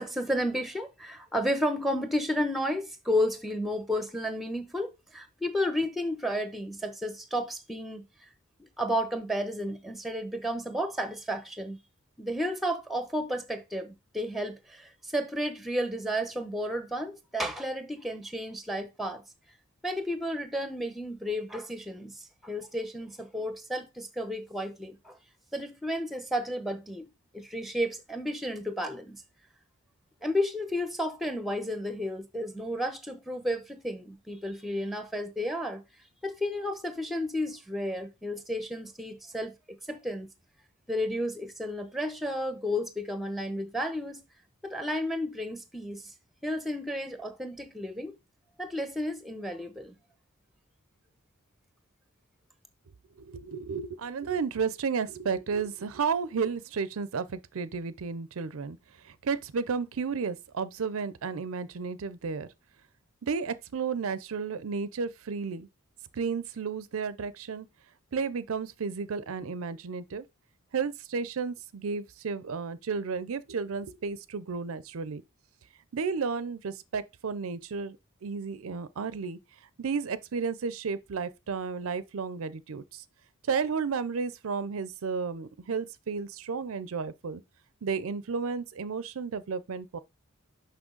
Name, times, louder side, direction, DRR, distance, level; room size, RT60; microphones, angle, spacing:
voice 1, 0.0-8.0 8.8-11.8 12.2-19.2 19.8-22.1 22.4-25.2 25.5-27.1 27.3-29.2 30.2-35.8 36.2-40.3 40.9-44.2 44.6-46.1 46.4-48.1 48.6-49.9, equal, ahead, 0.8 m, -32 dB
voice 2, 53.2-58.8 59.0-62.5 63.2-65.7 66.1-67.7 68.1-70.2 70.7-75.2 75.9-78.0 78.2-79.4 79.8-83.0 83.5-87.4 87.8-90.0, right 5 dB, 70° right, 0.5 m, -32 dB
6.2 x 5.5 x 3.8 m
head